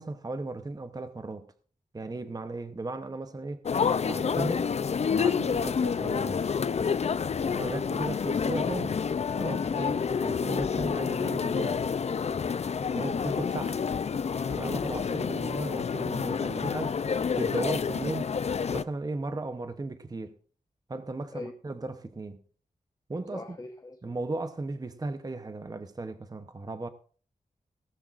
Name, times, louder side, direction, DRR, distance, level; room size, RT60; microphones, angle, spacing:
voice 1, 0.0-1.5 1.9-3.6 4.0-4.7 5.1-6.5 7.5-9.0 9.4-11.9 12.8-13.8 14.5-17.0 17.4-18.3 18.7-20.3 20.9-22.4 23.1-23.4 24.0-26.9, right 2 dB, 25° right, 0.8 m, -36 dB
sound 1, 3.7-18.8, left 6 dB, 50° left, 0.5 m, -29 dB
voice 2, 9.7-10.0 21.3-21.5 23.3-24.0, left 2 dB, 25° left, 1.1 m, -41 dB
17.5 x 13.5 x 2.5 m
wide cardioid pair, 115°, 14 cm